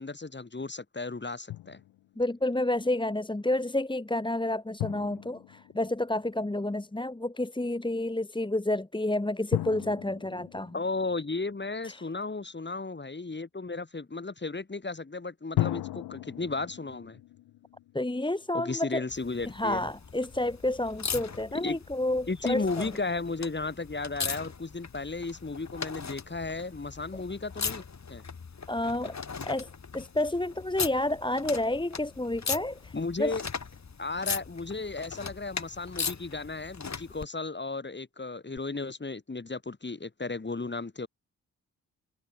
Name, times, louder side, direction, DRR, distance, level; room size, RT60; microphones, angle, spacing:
voice 1, 0.0-1.8 10.7-17.2 18.5-19.9 21.6-21.8 22.3-27.8 28.1-28.2 32.9-33.4 34.0-41.1, left 3 dB, 30° left, 4.8 m, -34 dB
Drum, 1.5-2.3 4.8-6.6 9.5-12.0 15.6-18.7, left 15 dB, 75° left, 1.6 m, -37 dB
voice 2, 2.2-10.7 11.8-12.0 17.9-19.0 19.5-22.9 28.7-29.2 29.4-33.4, left 1 dB, 10° left, 2.5 m, -30 dB
sound 1, 19.1-37.3 38.6-38.7, left 5 dB, 45° left, 6.9 m, -39 dB
hypercardioid pair, 40°, 38 cm